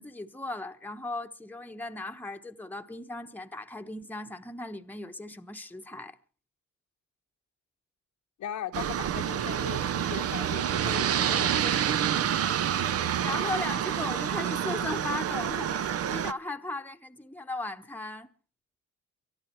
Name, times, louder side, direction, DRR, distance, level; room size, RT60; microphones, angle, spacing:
voice 1, 0.0-6.2 13.2-18.3, left 2 dB, 5° left, 1.1 m, -37 dB
voice 2, 8.4-11.8, left 10 dB, 70° left, 1.1 m, -39 dB
Aircraft, 8.7-16.3, right 9 dB, 50° right, 0.6 m, -28 dB
24.0 x 11.0 x 4.5 m
cardioid pair, 90°, 30 cm